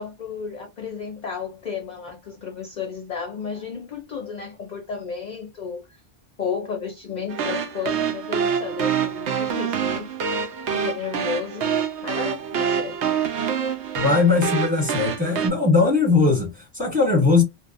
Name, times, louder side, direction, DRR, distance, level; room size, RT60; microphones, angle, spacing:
voice 1, 0.0-6.0 6.4-10.1 10.7-13.0, left 6 dB, 50° left, 0.6 m, -33 dB
sound 1, 7.3-15.5, right 7 dB, 85° right, 0.9 m, -26 dB
voice 2, 14.0-17.4, left 4 dB, 10° right, 1.0 m, -19 dB
2.4 x 2.2 x 2.5 m
omnidirectional pair, 1.1 m